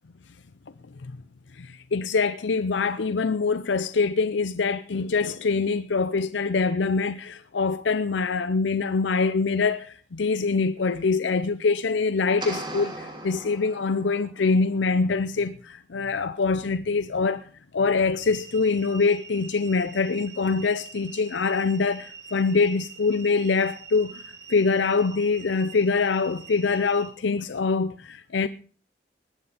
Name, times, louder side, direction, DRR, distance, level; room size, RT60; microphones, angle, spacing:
voice 1, 1.5-17.5 17.7-24.2 24.5-28.5, left 4 dB, 80° left, 0.6 m, -24 dB
sound 1, 12.4-14.3, right 2 dB, 25° right, 2.8 m, -37 dB
sound 2, 18.2-27.1, right 6 dB, 75° right, 4.2 m, -45 dB
20.0 x 9.6 x 5.0 m
head